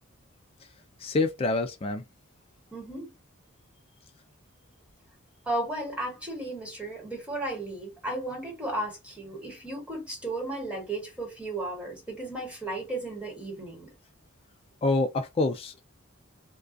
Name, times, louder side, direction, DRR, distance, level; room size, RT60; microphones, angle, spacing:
voice 1, 1.0-2.0 14.8-15.8, left 2 dB, 25° left, 0.3 m, -26 dB
voice 2, 2.7-3.1 5.4-13.9, right 1 dB, 5° right, 1.4 m, -34 dB
2.3 x 2.2 x 2.4 m
head